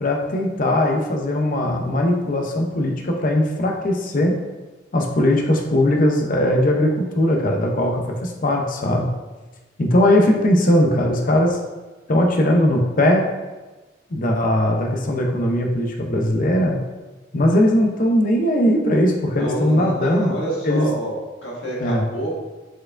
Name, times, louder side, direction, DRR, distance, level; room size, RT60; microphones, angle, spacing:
voice 1, 0.0-4.4 4.9-9.1 9.8-11.6 12.1-13.3 14.1-16.8 17.3-20.3 20.6-20.9 21.8-22.1, left 1 dB, 45° left, 1 dB, 0.6 m, -19 dB
voice 2, 19.4-21.1 21.4-22.3, equal, 85° left, -4 dB, 1.4 m, -27 dB
4.6 x 4.5 x 2.5 m, 1.2 s
head